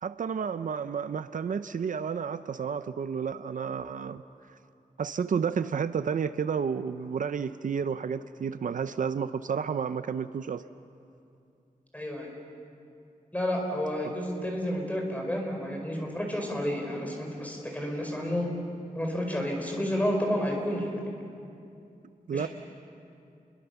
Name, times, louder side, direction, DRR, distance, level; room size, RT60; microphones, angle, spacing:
voice 1, 0.0-4.2 5.0-10.6 14.0-14.1 22.3-22.5, right 6 dB, 65° right, 11 dB, 0.6 m, -31 dB
voice 2, 11.9-12.3 13.3-18.5 18.9-20.9 22.3-22.5, equal, 10° left, 1 dB, 4.7 m, -30 dB
30.0 x 22.5 x 7.0 m, 2.6 s
wide cardioid pair, 160°, 14 cm